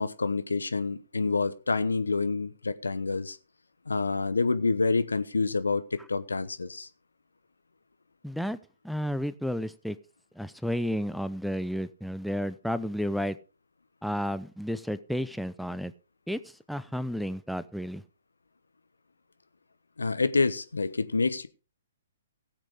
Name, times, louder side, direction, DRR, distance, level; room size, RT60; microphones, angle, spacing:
voice 1, 0.0-3.4 3.9-6.9 20.0-21.5, left 4 dB, 75° left, 0.9 m, -27 dB
voice 2, 8.2-8.6 8.8-10.0 10.4-13.4 14.0-15.9 16.3-16.4 16.7-18.0, equal, ahead, 0.5 m, -32 dB
17.0 x 7.5 x 3.6 m
figure-of-eight pair, 125°, 0 cm